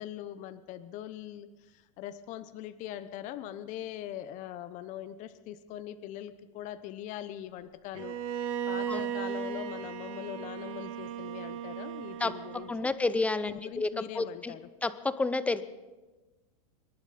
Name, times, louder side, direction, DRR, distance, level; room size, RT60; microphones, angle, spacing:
voice 1, 0.0-12.9 13.4-14.6, left 12 dB, 45° left, 12 dB, 0.9 m, -42 dB
Bowed string instrument, 7.9-13.0, right 8 dB, 70° right, 1.2 m, -36 dB
voice 2, 12.7-14.5 14.8-15.6, left 3 dB, 5° left, 13 dB, 0.7 m, -30 dB
25.5 x 11.5 x 4.2 m, 1.2 s
hypercardioid pair, 120°, 18 cm